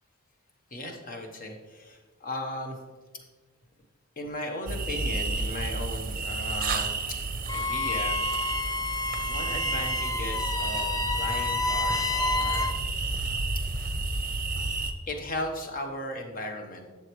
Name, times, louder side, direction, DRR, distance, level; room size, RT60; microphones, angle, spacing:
voice 1, 0.7-2.8 4.2-7.2 7.5-8.2 9.2-12.7 15.1-16.9, left 1 dB, 40° left, 3 dB, 1.2 m, -36 dB
sound 1, 4.7-14.9, right 3 dB, 40° right, 0.7 m, -31 dB
Wind instrument woodwind instrument, 7.5-12.8, left 3 dB, 15° left, 0.4 m, -30 dB
11.5 x 7.2 x 3.1 m, 1.4 s
head